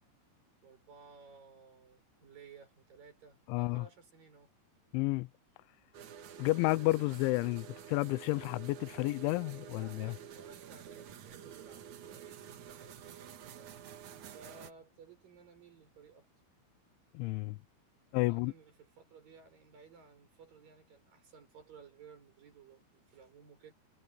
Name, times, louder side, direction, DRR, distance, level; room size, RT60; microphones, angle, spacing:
voice 1, 0.6-4.5 4.9-5.0 9.8-13.7 14.3-16.3 18.2-23.7, right 5 dB, 45° right, 8.0 m, -57 dB
voice 2, 3.5-3.9 4.9-5.3 6.4-10.1 17.1-17.6 18.1-18.5, left 22 dB, 85° left, 2.9 m, -31 dB
sound 1, 5.9-14.7, right 9 dB, 75° right, 1.7 m, -49 dB
omnidirectional pair, 5.7 m